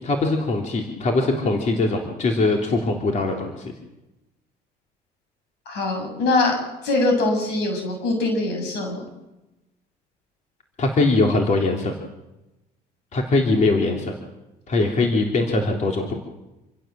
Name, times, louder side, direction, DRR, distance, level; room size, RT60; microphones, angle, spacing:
voice 1, 0.0-3.7 10.8-11.9 13.1-14.1 14.7-16.1, left 2 dB, 45° left, 1 dB, 3.4 m, -21 dB
voice 2, 5.7-6.5 6.8-9.0, left 2 dB, 85° left, 3 dB, 7.8 m, -22 dB
27.5 x 16.0 x 7.6 m, 1.0 s
cardioid pair, 110°, 17 cm